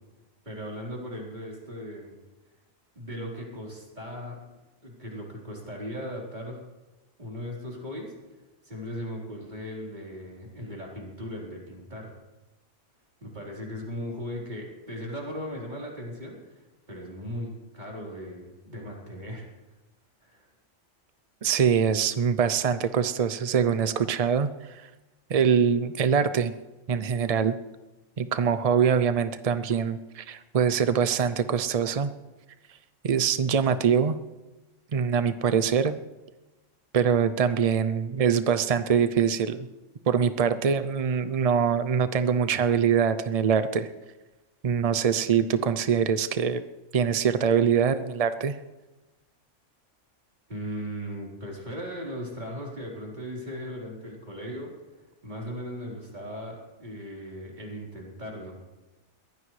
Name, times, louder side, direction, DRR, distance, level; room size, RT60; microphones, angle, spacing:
voice 1, 0.4-2.1 3.0-4.4 4.8-6.6 7.2-8.1 8.7-12.1 13.2-16.6 16.9-19.4 20.2-20.5 50.5-54.7 55.2-58.6, equal, 35° right, -3 dB, 4.4 m, -37 dB
voice 2, 21.4-24.9 25.3-26.5 26.9-27.5 28.2-32.1 33.0-34.2 34.9-36.0 36.9-39.7 40.1-43.9 44.6-46.6 46.9-48.6, right 7 dB, 50° right, 11 dB, 0.4 m, -24 dB
22.0 x 16.0 x 3.3 m, 1.1 s
omnidirectional pair, 1.4 m